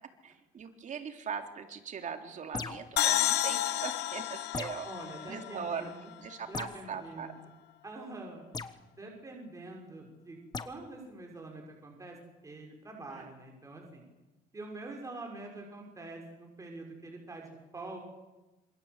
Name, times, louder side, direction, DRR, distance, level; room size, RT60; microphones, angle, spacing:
voice 1, 0.2-4.9 5.2-7.3 13.1-13.3, right 7 dB, 45° right, 5 dB, 3.6 m, -40 dB
sound 1, 2.5-3.0 4.5-4.9 6.5-6.8 8.5-8.8 10.5-10.7, left 4 dB, 25° left, 1.4 m, -38 dB
sound 2, 3.0-6.5, left 12 dB, 80° left, 1.7 m, -31 dB
voice 2, 4.8-6.0 6.5-7.3 7.8-8.5 8.9-10.4 10.6-12.2 12.4-14.0 14.5-18.0, right 2 dB, 20° right, 1 dB, 6.4 m, -45 dB
27.0 x 25.5 x 8.4 m, 1.1 s
cardioid pair, 110°, 17 cm